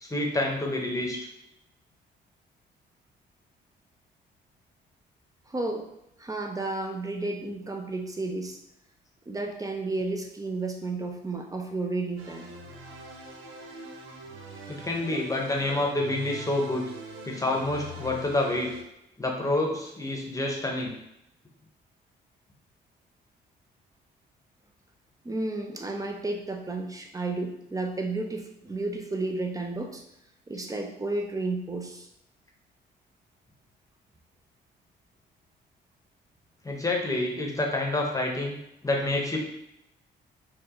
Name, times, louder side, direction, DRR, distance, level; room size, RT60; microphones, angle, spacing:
voice 1, 0.0-1.2 14.7-16.8 17.2-18.7 19.2-20.9 36.6-38.6 38.8-39.4, left 2 dB, 15° left, 0 dB, 0.9 m, -28 dB
voice 2, 5.5-5.9 6.2-8.6 9.3-12.5 25.2-30.0 30.5-32.1, right 2 dB, 15° right, 3 dB, 0.6 m, -32 dB
sound 1, 12.2-18.8, right 2 dB, 85° right, 0.7 m, -43 dB
4.5 x 2.4 x 3.0 m, 0.80 s
cardioid pair, 90°, 20 cm